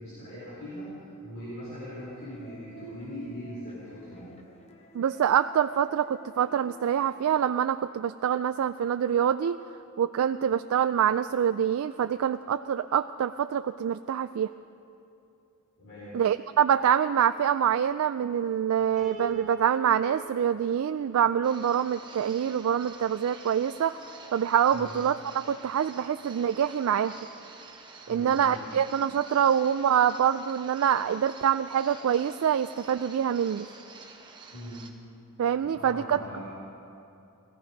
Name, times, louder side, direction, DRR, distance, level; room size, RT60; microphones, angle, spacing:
voice 1, 0.0-4.3 15.8-16.2 24.7-24.9 28.1-28.7 34.5-34.8 35.6-36.5, equal, 55° left, -9 dB, 4.5 m, -41 dB
sound 1, 2.0-7.4, left 1 dB, 30° left, 1.0 m, -53 dB
voice 2, 4.9-9.6 10.0-14.5 16.1-24.0 24.3-27.1 28.1-33.7 35.4-36.2, right 8 dB, 65° right, 11 dB, 0.3 m, -25 dB
Piano, 19.0-22.2, right 5 dB, ahead, 4.7 m, -45 dB
sound 2, 21.4-34.9, right 4 dB, 20° right, 1.1 m, -49 dB
18.0 x 15.0 x 5.2 m, 2.8 s
head